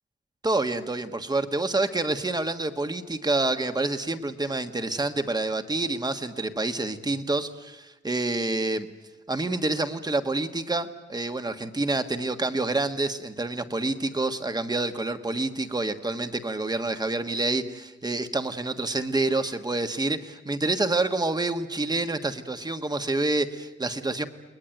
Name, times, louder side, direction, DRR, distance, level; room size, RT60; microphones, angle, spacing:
voice 1, 0.4-8.9 9.3-24.3, right 2 dB, 20° right, 8 dB, 1.5 m, -27 dB
29.5 x 20.5 x 9.2 m, 1.1 s
wide cardioid pair, 120°, 19 cm